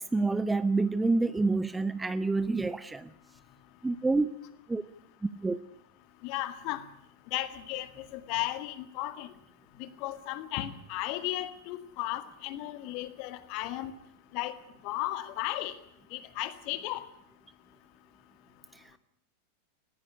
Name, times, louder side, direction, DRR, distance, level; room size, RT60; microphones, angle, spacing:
voice 1, 0.0-3.1 3.8-4.3 4.7-4.8 5.4-5.6 18.7-18.8, right 3 dB, 10° right, 15 dB, 0.8 m, -28 dB
voice 2, 6.2-6.8 7.3-9.3 9.8-13.9 14.3-14.5 14.8-15.7 16.1-17.0, left 15 dB, 45° left, 11 dB, 1.9 m, -35 dB
19.5 x 15.5 x 9.9 m, 0.75 s
figure-of-eight pair, 90°, 0 cm